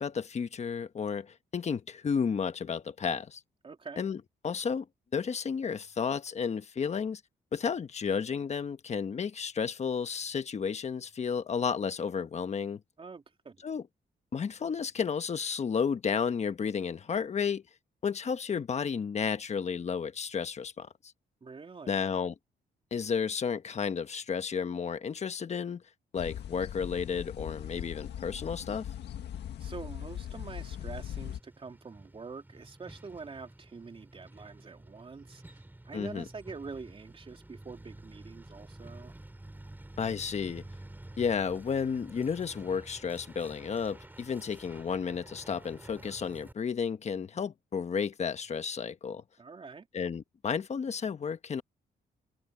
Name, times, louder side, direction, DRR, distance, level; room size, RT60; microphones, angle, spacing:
voice 1, 0.0-3.4 4.0-4.8 5.1-7.2 7.5-12.8 13.6-13.8 14.3-17.6 18.0-20.9 21.9-22.3 22.9-25.8 26.1-28.9 35.9-36.2 40.0-40.6 41.2-49.2 49.9-51.6, left 6 dB, 40° left, 1.2 m, -32 dB
voice 2, 3.6-4.0 13.0-13.6 21.4-22.1 29.6-39.1 49.4-49.9, right 4 dB, 30° right, 3.2 m, -45 dB
sound 1, 26.2-31.4, left 10 dB, 80° left, 1.7 m, -40 dB
Truck, 30.3-46.5, right 1 dB, 10° right, 6.2 m, -50 dB
cardioid pair, 115°, 17 cm